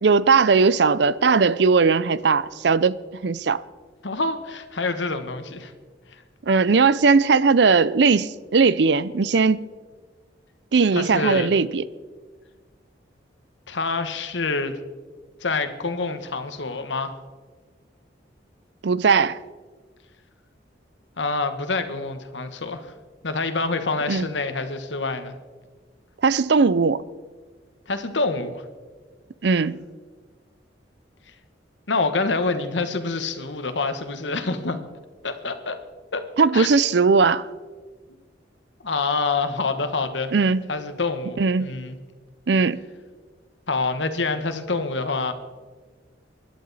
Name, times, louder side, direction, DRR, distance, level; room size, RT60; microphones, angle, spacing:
voice 1, 0.0-3.0 3.2-3.6 6.5-9.7 10.7-11.8 18.8-19.4 24.1-24.3 26.2-27.0 29.4-29.8 36.4-37.5 40.3-40.6 41.4-41.7 42.5-42.9, right 4 dB, 65° right, 0.5 m, -18 dB
voice 2, 4.0-5.7 10.9-11.5 13.7-14.8 15.4-17.1 21.2-22.9 23.2-25.3 27.9-28.6 31.9-34.8 35.2-35.8 36.1-36.2 36.5-36.7 38.8-40.3 40.7-42.0 43.7-45.3, left 3 dB, 80° left, 1.3 m, -26 dB
24.0 x 11.5 x 4.1 m
head